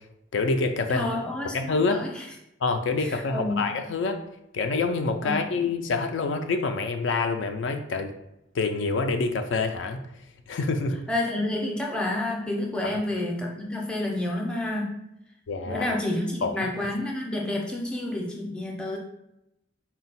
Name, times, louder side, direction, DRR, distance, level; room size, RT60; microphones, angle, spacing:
voice 1, 0.3-1.1 1.5-2.0 2.6-4.2 4.5-8.1 8.5-10.0 10.5-11.0 12.8-13.0 15.5-15.9 16.4-16.5, left 3 dB, 70° left, 6 dB, 0.4 m, -26 dB
voice 2, 0.9-2.3 3.0-3.7 5.2-5.4 11.1-14.9 15.6-19.0, left 1 dB, 5° left, -1 dB, 0.5 m, -29 dB
4.0 x 2.2 x 4.0 m, 0.85 s
head